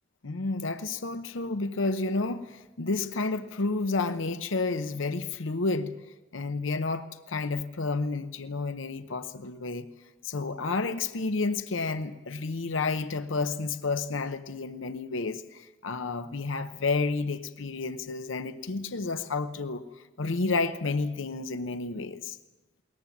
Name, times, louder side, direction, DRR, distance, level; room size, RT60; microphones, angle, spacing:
voice 1, 0.2-5.9 6.3-9.9 10.2-19.8 20.2-22.4, left 3 dB, 85° left, 0.8 m, -30 dB
21.5 x 19.0 x 7.2 m
head